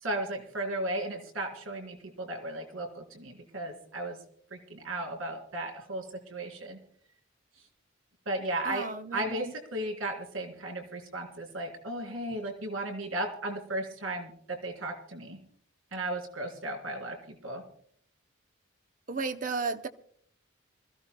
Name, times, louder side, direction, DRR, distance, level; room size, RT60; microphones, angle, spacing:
voice 1, 0.0-4.2 4.5-6.0 6.3-6.8 8.2-8.9 9.1-15.4 15.9-17.6, right 1 dB, 80° right, 3.3 m, -35 dB
voice 2, 8.6-9.5 19.1-19.9, right 4 dB, 40° right, 0.7 m, -34 dB
27.0 x 15.0 x 2.2 m
head